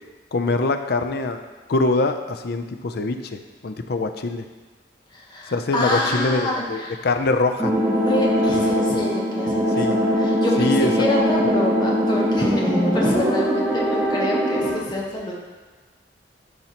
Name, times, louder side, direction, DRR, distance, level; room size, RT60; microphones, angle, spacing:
voice 1, 0.3-1.4 1.7-3.4 3.6-4.5 5.5-7.7 9.8-10.0 10.6-10.9, left 2 dB, 60° left, 7 dB, 0.5 m, -23 dB
voice 2, 5.1-6.9 7.9-15.3, left 1 dB, 25° left, -3 dB, 1.0 m, -27 dB
sound 1, 7.6-14.7, equal, 15° right, 1.5 m, -21 dB
12.0 x 4.4 x 2.9 m, 1.4 s
head